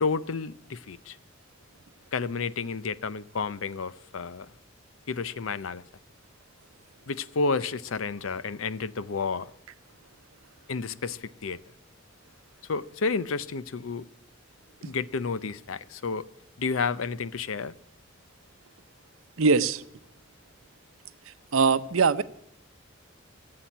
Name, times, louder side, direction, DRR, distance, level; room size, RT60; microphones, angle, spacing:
voice 1, 0.0-1.2 2.1-4.5 5.1-5.8 7.1-9.5 10.7-11.6 12.7-14.0 14.8-16.3 16.6-17.7, left 4 dB, 85° left, 0.6 m, -31 dB
voice 2, 19.4-19.8 21.3-22.2, right 4 dB, 90° right, 0.7 m, -22 dB
16.0 x 7.7 x 10.0 m
head